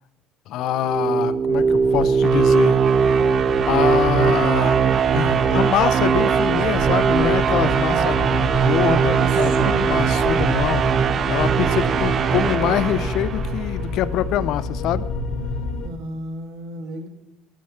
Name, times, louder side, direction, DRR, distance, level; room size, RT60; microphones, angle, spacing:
voice 1, 0.5-2.8 3.7-4.8 5.1-8.2 8.6-10.8 11.3-15.0, left 12 dB, 55° left, 15 dB, 0.5 m, -24 dB
sound 1, 0.6-13.8, right 6 dB, 35° right, 0.4 m, -20 dB
sound 2, 1.3-15.9, left 3 dB, 85° left, 1.4 m, -30 dB
voice 2, 7.8-8.1 9.0-10.0 15.8-17.1, right 2 dB, 70° right, 5 dB, 1.5 m, -32 dB
12.5 x 6.4 x 5.7 m, 0.93 s
cardioid pair, 145°, 0 cm